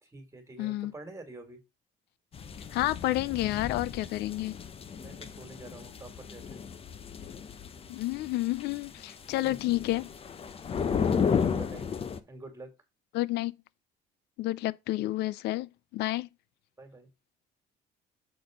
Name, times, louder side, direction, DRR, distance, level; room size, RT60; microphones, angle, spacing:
voice 1, 0.0-1.6 4.9-6.6 9.4-9.6 10.8-11.9 12.3-12.7 16.8-17.1, right 2 dB, 15° right, 2.3 m, -47 dB
voice 2, 0.6-0.9 2.7-4.5 7.9-10.1 13.1-13.5 14.4-16.3, left 17 dB, 75° left, 0.4 m, -30 dB
sound 1, 2.3-12.2, left 6 dB, 35° left, 0.7 m, -34 dB
6.8 x 4.1 x 5.1 m
cardioid pair, 110°, 17 cm